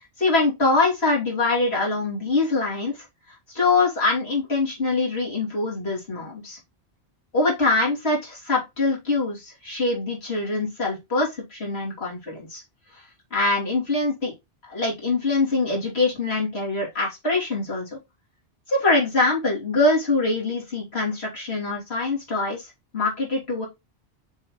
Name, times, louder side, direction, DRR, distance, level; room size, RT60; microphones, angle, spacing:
voice 1, 0.2-6.6 7.3-12.6 12.9-13.0 13.3-14.3 14.6-18.0 18.7-23.7, left 3 dB, 70° left, -3 dB, 3.3 m, -24 dB
6.9 x 3.4 x 4.6 m, 0.21 s
omnidirectional pair, 1.1 m